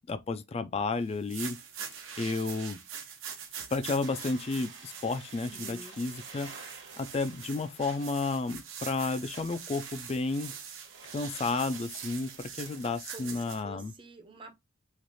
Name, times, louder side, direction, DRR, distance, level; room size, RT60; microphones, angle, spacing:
voice 1, 0.1-1.6 2.2-2.8 3.7-10.5 11.1-13.9, left 3 dB, 30° left, 0.3 m, -32 dB
sound 1, 1.1-13.6, right 7 dB, 85° right, 0.8 m, -44 dB
sound 2, 4.0-13.0, right 4 dB, 60° right, 1.0 m, -52 dB
voice 2, 5.4-6.0 13.1-14.5, right 2 dB, 25° right, 0.6 m, -48 dB
3.1 x 2.4 x 2.6 m
head